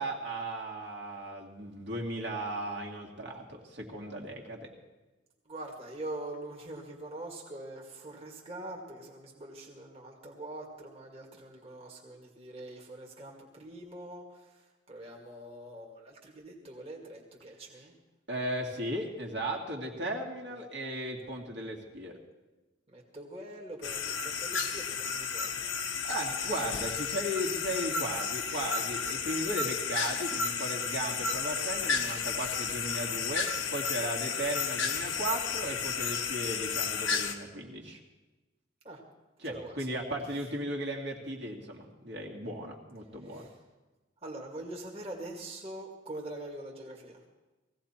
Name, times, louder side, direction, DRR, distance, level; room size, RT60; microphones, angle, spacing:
voice 1, 0.0-4.7 18.3-22.1 26.1-38.0 39.4-43.5, right 1 dB, 60° right, 0 dB, 2.4 m, -36 dB
voice 2, 5.5-17.9 20.5-20.7 21.1-21.3 22.9-25.7 38.8-39.0 39.4-39.8 43.3-43.5 44.2-47.2, right 1 dB, 30° right, -2 dB, 2.0 m, -44 dB
sound 1, 23.8-37.3, left 6 dB, 75° left, 1.4 m, -32 dB
19.0 x 16.0 x 4.4 m, 1.1 s
head